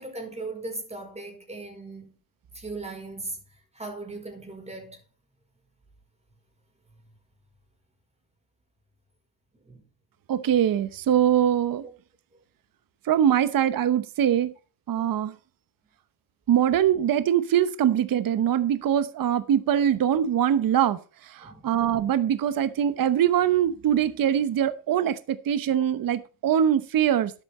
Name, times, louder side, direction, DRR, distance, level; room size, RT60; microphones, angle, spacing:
voice 1, 0.0-2.2 2.5-5.0 9.6-9.8 11.8-11.9 21.4-21.7, right 2 dB, 15° right, 5.3 m, -38 dB
voice 2, 10.3-11.8 13.0-14.5 14.9-15.3 16.5-27.3, right 10 dB, 45° right, 1.0 m, -23 dB
11.5 x 8.7 x 4.4 m
cardioid pair, 100°, 47 cm